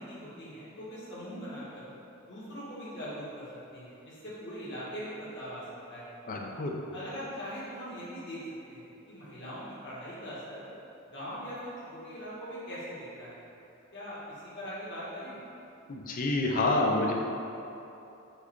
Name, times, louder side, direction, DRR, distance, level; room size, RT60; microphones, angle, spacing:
voice 1, 0.0-1.8 2.3-3.4 3.7-5.6 5.9-6.1 6.9-8.4 8.7-10.6 11.1-13.4 13.9-15.4, equal, 55° left, -9 dB, 1.3 m, -41 dB
voice 2, 6.3-6.7 15.9-17.1, left 2 dB, 40° left, 0 dB, 0.4 m, -28 dB
4.6 x 2.3 x 4.4 m, 2.9 s
head